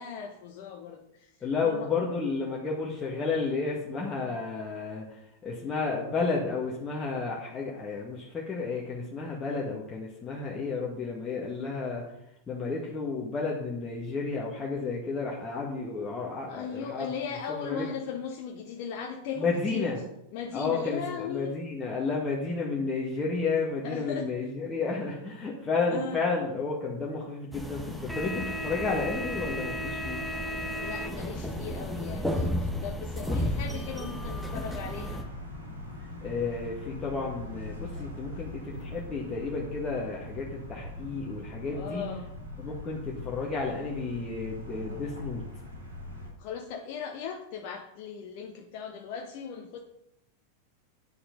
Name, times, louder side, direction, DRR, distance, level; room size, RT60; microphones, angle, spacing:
voice 1, 0.0-1.9 16.5-19.9 20.3-21.6 23.8-24.5 25.9-26.2 30.5-35.3 41.7-42.3 46.4-49.8, left 7 dB, 45° left, 2 dB, 1.1 m, -38 dB
voice 2, 1.4-12.0 12.5-17.1 17.6-17.9 19.4-20.0 20.5-30.2 36.2-42.0 42.6-45.4, left 4 dB, 20° left, -4 dB, 1.8 m, -32 dB
sound 1, 27.5-35.2, left 1 dB, ahead, 1.4 m, -33 dB
sound 2, 34.1-46.3, left 1 dB, 80° right, 3.5 m, -41 dB
10.0 x 6.9 x 5.3 m, 0.82 s
figure-of-eight pair, 90°, 0 cm